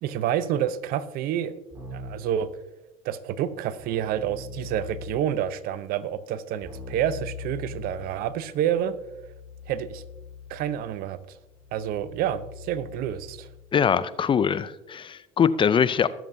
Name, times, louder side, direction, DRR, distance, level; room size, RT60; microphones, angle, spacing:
voice 1, 0.0-1.5 1.9-2.5 3.0-8.9 9.7-10.0 10.5-11.2 11.7-13.5, right 10 dB, 60° right, 16 dB, 0.7 m, -28 dB
Keyboard (musical), 1.7-2.4 3.8-5.4 6.6-13.7, left 4 dB, 25° right, 3.7 m, -42 dB
voice 2, 13.7-16.1, left 7 dB, 30° left, 16 dB, 0.5 m, -22 dB
21.0 x 7.4 x 2.7 m, 1.0 s
hypercardioid pair, 80°, 17 cm